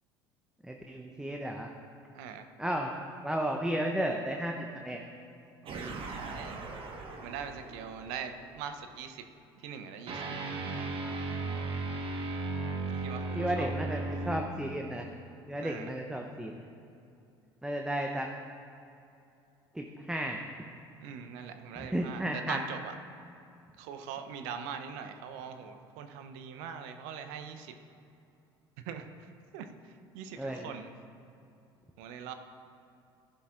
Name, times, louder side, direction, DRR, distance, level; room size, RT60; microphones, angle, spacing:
voice 1, 0.6-1.7 2.6-2.9 3.2-5.0 13.3-15.1 15.5-16.5 17.6-18.3 19.7-20.4 21.8-22.6 30.4-30.7, right 1 dB, 5° right, 2 dB, 0.8 m, -33 dB
voice 2, 2.1-2.5 5.6-6.7 7.2-9.3 9.6-10.3 12.9-13.7 15.6-15.9 21.0-22.9 23.8-27.7 28.8-30.9 32.0-32.3, right 7 dB, 60° right, 7 dB, 0.8 m, -42 dB
sound 1, 5.7-8.4 10.1-14.4, right 3 dB, 40° right, 1.4 m, -36 dB
14.5 x 11.0 x 2.6 m, 2.7 s
figure-of-eight pair, 65°, 13 cm